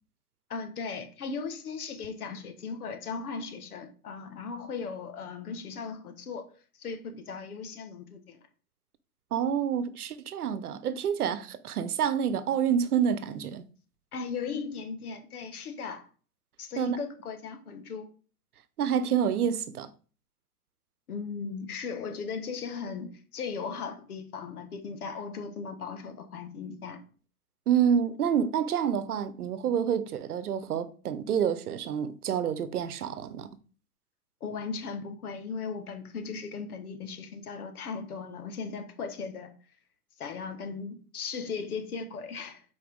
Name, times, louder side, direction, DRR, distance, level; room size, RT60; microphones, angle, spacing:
voice 1, 0.5-6.5 6.8-8.4 14.1-16.1 16.6-18.1 21.1-27.0 34.4-39.5 40.2-42.6, left 5 dB, 75° left, 1.5 m, -37 dB
voice 2, 9.3-13.6 16.8-17.0 18.8-19.9 27.7-33.6, right 8 dB, 75° right, 0.9 m, -28 dB
8.5 x 4.3 x 3.6 m
hypercardioid pair, 110°, 45 cm